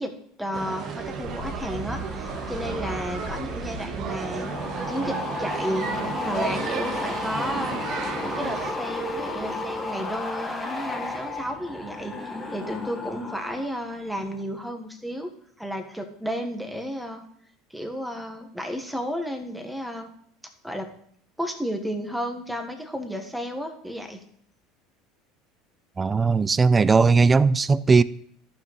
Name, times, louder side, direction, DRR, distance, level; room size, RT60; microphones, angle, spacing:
voice 1, 0.0-4.5 4.9-5.9 6.2-7.8 8.2-12.2 12.5-15.3 15.6-17.2 17.7-20.1 20.6-20.9 21.4-24.2, equal, 5° right, 1.4 m, -32 dB
sound 1, 0.5-8.7, right 6 dB, 50° right, 1.1 m, -33 dB
sound 2, 1.0-13.7 14.0-14.4, left 2 dB, 15° left, 1.6 m, -33 dB
voice 2, 26.0-28.0, right 4 dB, 25° right, 0.3 m, -18 dB
14.0 x 6.0 x 3.2 m
hypercardioid pair, 85°, 0 cm